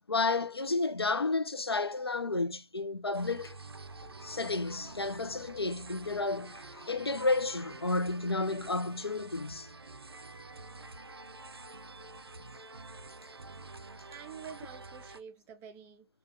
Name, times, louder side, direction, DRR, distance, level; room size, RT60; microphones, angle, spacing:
voice 1, 0.1-3.6 4.0-9.7, left 3 dB, 85° left, 0.4 m, -32 dB
sound 1, 3.1-15.2, right 3 dB, 85° right, 0.4 m, -48 dB
voice 2, 14.1-16.1, right 7 dB, 15° right, 0.5 m, -47 dB
3.4 x 2.3 x 3.1 m
figure-of-eight pair, 125°, 13 cm